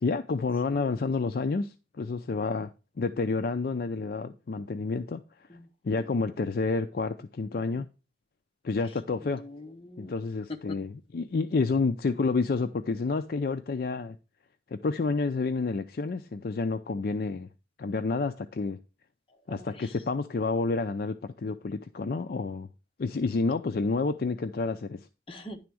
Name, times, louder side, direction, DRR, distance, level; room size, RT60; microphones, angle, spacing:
voice 1, 0.0-2.7 3.0-5.2 5.8-7.9 8.6-9.4 10.0-14.2 14.8-17.5 17.8-18.8 19.5-22.7 23.0-25.0, left 3 dB, 55° left, 0.4 m, -29 dB
voice 2, 0.7-1.0 5.5-6.1 8.8-8.9 9.2-10.1 10.5-10.8 19.5-20.0 25.3-25.6, left 2 dB, 30° left, 1.0 m, -44 dB
10.5 x 3.5 x 6.2 m
head